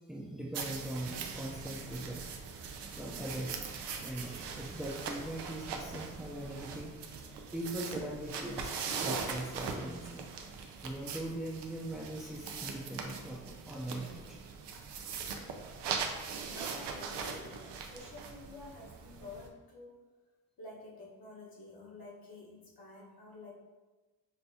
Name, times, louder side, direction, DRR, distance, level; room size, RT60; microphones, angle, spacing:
voice 1, 0.1-2.6 3.0-6.9 7.5-8.7 9.0-10.3 10.8-14.4, right 1 dB, ahead, -4 dB, 0.6 m, -41 dB
sound 1, 0.5-19.5, right 5 dB, 90° right, 0.5 m, -41 dB
voice 2, 16.5-20.0 20.6-23.5, left 2 dB, 60° left, -4 dB, 1.3 m, -50 dB
5.6 x 2.2 x 2.7 m, 1.2 s
cardioid pair, 60°, 40 cm